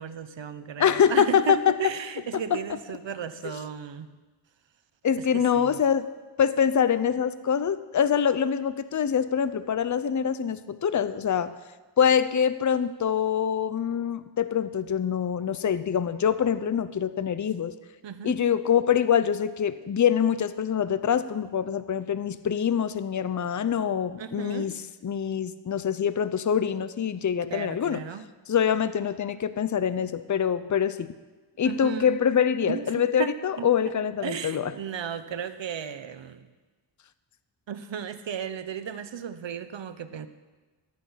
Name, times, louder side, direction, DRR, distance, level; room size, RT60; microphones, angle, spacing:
voice 1, 0.0-4.1 5.3-5.8 18.0-18.3 24.2-24.7 27.5-28.2 31.6-32.2 32.7-32.9 33.2-33.7 34.2-36.5 37.7-40.3, right 7 dB, 65° right, 12 dB, 0.9 m, -35 dB
voice 2, 0.8-1.7 2.5-2.6 5.0-6.1 6.4-11.5 12.0-17.7 18.2-28.0 28.5-31.1 31.6-34.7, left 8 dB, 40° left, 13 dB, 0.6 m, -25 dB
13.5 x 9.2 x 5.7 m, 1.2 s
cardioid pair, 65°, 49 cm